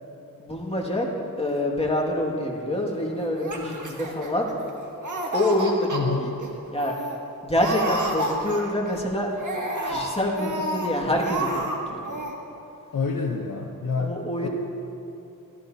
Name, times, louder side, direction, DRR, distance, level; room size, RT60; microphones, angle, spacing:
voice 1, 0.4-1.1 1.4-4.5 5.3-6.3 6.7-6.9 7.4-9.3 9.8-12.2 14.0-14.5, left 1 dB, 15° left, -2 dB, 2.1 m, -26 dB
Laughter, 3.3-4.7 5.0-6.0 6.4-6.5 6.8-7.2 7.5-8.9 9.3-10.9 11.2-11.8 12.0-12.3, right 1 dB, 55° right, 1.7 m, -30 dB
voice 2, 5.9-6.4 12.9-14.5, left 4 dB, 60° left, 0 dB, 1.0 m, -28 dB
17.5 x 14.0 x 2.9 m, 2.8 s
cardioid pair, 60°, 37 cm